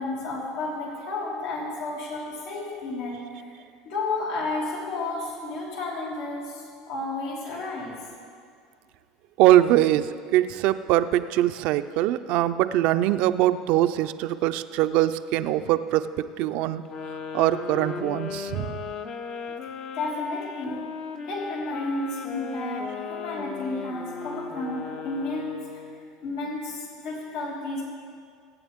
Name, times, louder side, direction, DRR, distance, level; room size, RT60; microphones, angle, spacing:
voice 1, 0.0-3.6 3.8-8.0 19.9-20.9 21.2-25.8 26.2-27.8, left 2 dB, 80° left, -4 dB, 2.7 m, -32 dB
voice 2, 9.4-16.1 16.4-16.8 17.3-18.7, right 14 dB, 65° right, 11 dB, 0.5 m, -22 dB
sound 1, 16.8-26.1, left 6 dB, 45° left, 0.9 m, -36 dB
23.0 x 8.9 x 3.6 m, 2.2 s
supercardioid pair, 95°, 2 cm